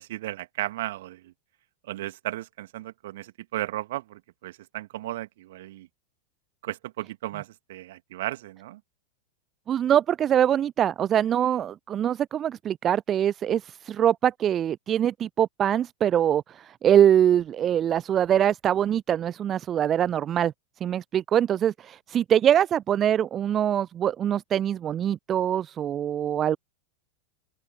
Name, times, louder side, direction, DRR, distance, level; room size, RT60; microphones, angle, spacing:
voice 1, 0.0-1.3 1.8-5.9 6.6-8.8, right 16 dB, 55° right, 2.5 m, -35 dB
voice 2, 9.7-20.5 20.8-26.6, right 10 dB, 25° right, 0.3 m, -23 dB
open air
figure-of-eight pair, 90°, 0 cm